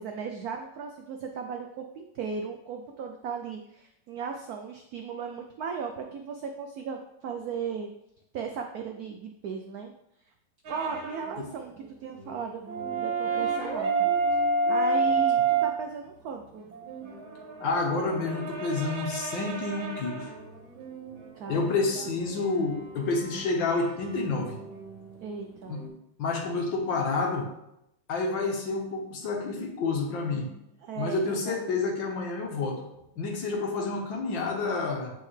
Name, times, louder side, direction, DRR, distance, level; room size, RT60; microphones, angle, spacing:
voice 1, 0.0-7.9 8.3-9.9 10.7-14.4 14.7-16.7 21.3-22.1 25.2-25.8 30.8-31.7, right 6 dB, 90° right, 4 dB, 0.8 m, -37 dB
sound 1, 10.6-11.5 11.8-11.9 12.2-15.7 16.6-25.9, right 4 dB, 75° right, 1.8 m, -31 dB
voice 2, 17.6-20.3 21.5-24.6 25.7-25.8 26.2-27.5 28.1-30.5 31.0-32.8 33.2-35.1, left 3 dB, 70° left, 1 dB, 1.8 m, -29 dB
8.4 x 4.4 x 3.2 m, 0.82 s
omnidirectional pair, 2.2 m